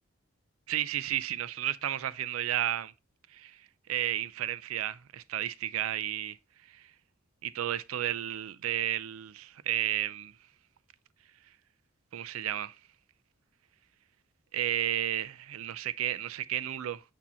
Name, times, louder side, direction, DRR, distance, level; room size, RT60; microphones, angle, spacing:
voice 1, 0.7-2.9 3.3-3.6 3.9-6.4 6.7-6.9 7.4-10.3 12.1-12.7 14.5-17.0, right 11 dB, 85° right, 0.4 m, -32 dB
8.4 x 2.8 x 4.2 m
head